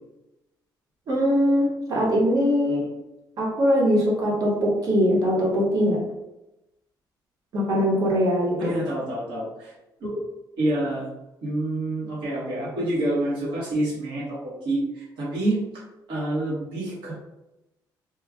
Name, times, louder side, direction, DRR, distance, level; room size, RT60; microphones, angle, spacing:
voice 1, 1.1-2.8 3.4-6.0 7.5-8.7, equal, 55° right, -2 dB, 1.1 m, -21 dB
voice 2, 8.6-9.7 10.0-10.2 10.6-11.1 11.4-15.6 16.1-17.1, right 1 dB, 85° right, -7 dB, 1.4 m, -27 dB
3.2 x 2.3 x 3.6 m, 0.94 s
cardioid pair, 150°, 8 cm